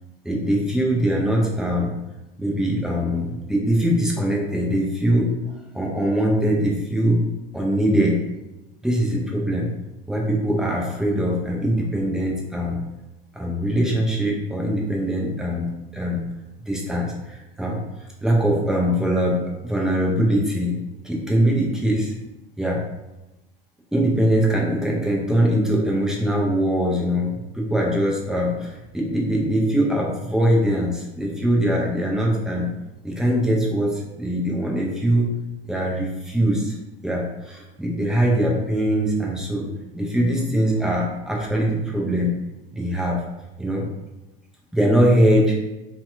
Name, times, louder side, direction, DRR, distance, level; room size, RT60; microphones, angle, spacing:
voice 1, 0.2-1.9 2.4-7.2 7.5-8.2 8.8-9.7 10.1-12.8 13.3-15.7 15.9-16.2 16.6-17.8 18.2-20.8 21.0-22.1 22.6-22.8 23.9-32.7 33.0-35.3 35.6-36.8 37.0-39.7 39.9-42.3 42.7-43.2 43.6-43.8 44.7-45.6, equal, ahead, -3 dB, 0.4 m, -22 dB
2.7 x 2.2 x 2.2 m, 0.98 s
figure-of-eight pair, 80°, 29 cm